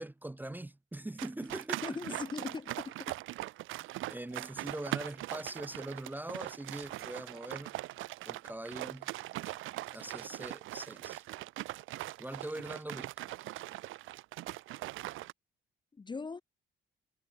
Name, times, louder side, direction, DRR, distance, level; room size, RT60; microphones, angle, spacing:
voice 1, 0.0-2.2 4.1-7.7 8.2-9.1 9.9-11.2 12.2-13.1, right 1 dB, 10° right, 0.7 m, -42 dB
sound 1, 1.2-15.3, right 17 dB, 90° right, 0.9 m, -41 dB
voice 2, 1.8-3.1 15.9-16.4, left 4 dB, 25° left, 0.7 m, -40 dB
sound 2, 4.7-8.9, right 7 dB, 50° right, 4.4 m, -66 dB
cardioid pair, 90°, 20 cm